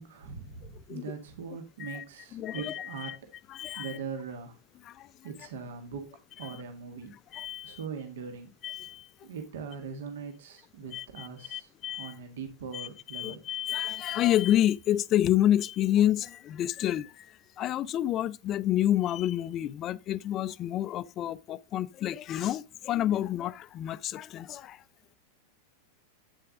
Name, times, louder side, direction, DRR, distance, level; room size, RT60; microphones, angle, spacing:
voice 1, 0.0-3.2 3.7-4.6 5.2-6.1 6.4-7.1 7.6-8.5 9.2-11.7 12.0-13.4, right 5 dB, 60° right, 1.7 m, -41 dB
voice 2, 2.3-3.2 3.5-4.0 4.9-5.1 6.4-6.5 7.3-7.8 8.6-9.1 10.9-12.1 12.7-24.8, left 12 dB, 30° left, 0.5 m, -29 dB
8.5 x 7.6 x 3.7 m
figure-of-eight pair, 90°, 0 cm